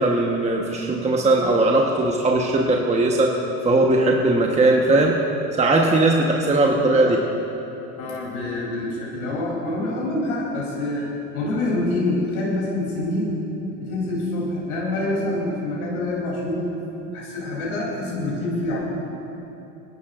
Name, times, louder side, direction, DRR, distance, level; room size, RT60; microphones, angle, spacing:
voice 1, 0.0-3.3 3.6-5.2 5.6-7.2, right 2 dB, 15° right, 0 dB, 1.2 m, -19 dB
voice 2, 8.0-13.4 13.7-16.7 17.1-18.8, left 2 dB, 80° left, -5 dB, 3.4 m, -26 dB
27.0 x 11.5 x 2.5 m, 3.0 s
hypercardioid pair, 95°, 43 cm